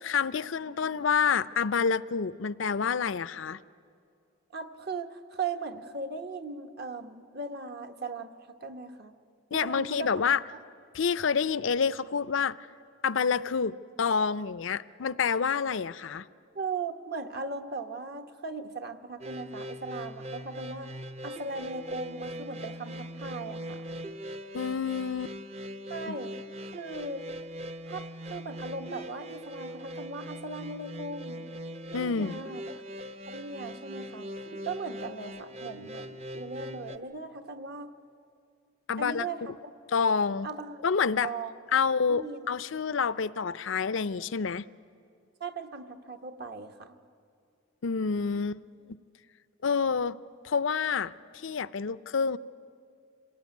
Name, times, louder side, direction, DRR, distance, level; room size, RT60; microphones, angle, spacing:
voice 1, 0.0-3.6 9.5-10.4 10.9-12.6 13.0-16.2 24.5-25.3 26.1-26.2 31.9-32.3 38.9-39.3 39.9-40.5 40.8-41.3 41.7-44.7 47.8-48.6 49.6-50.2 50.4-52.4, left 6 dB, 65° left, 17 dB, 0.5 m, -28 dB
voice 2, 4.5-9.1 9.5-10.1 16.5-23.9 25.9-26.3 26.7-27.2 27.9-31.4 31.9-32.8 33.3-37.9 39.0-39.7 40.4-40.8 41.2-41.5 42.1-42.5 45.4-47.0, right 4 dB, 50° right, 7 dB, 1.2 m, -38 dB
sound 1, 19.2-37.0, equal, 30° right, 0.8 m, -41 dB
26.5 x 19.5 x 9.4 m, 2.4 s
head